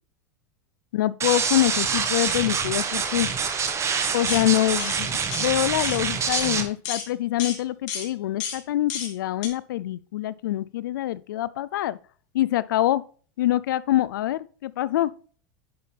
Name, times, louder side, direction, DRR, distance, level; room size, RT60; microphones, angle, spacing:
voice 1, 0.9-3.3 4.1-12.0 12.3-13.0 13.4-15.1, left 14 dB, 85° left, 0.5 m, -25 dB
sound 1, 1.2-6.6, right 6 dB, 25° right, 1.4 m, -26 dB
sound 2, 4.3-4.5 4.8-5.0 5.3-5.5 5.8-6.0 6.3-6.5 6.9-7.1 7.4-7.6 7.9-8.1 8.4-8.6 8.9-9.1 9.4-9.5, left 7 dB, 65° left, 2.8 m, -31 dB
9.6 x 5.6 x 3.3 m
supercardioid pair, 115°, 10 cm